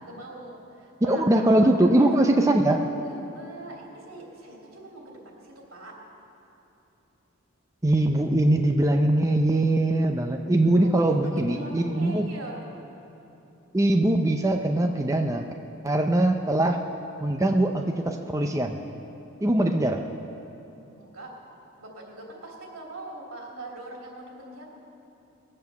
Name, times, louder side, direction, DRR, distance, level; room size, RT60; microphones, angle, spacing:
voice 1, 0.0-6.0 10.7-12.6 21.0-21.3 21.7-24.7, right 2 dB, 85° right, -2 dB, 3.2 m, -42 dB
voice 2, 1.0-2.8 7.8-12.3 13.7-15.4 15.8-16.8 17.2-18.8 19.4-20.0, right 1 dB, 15° right, 4 dB, 0.5 m, -22 dB
20.0 x 7.6 x 7.0 m, 2.9 s
head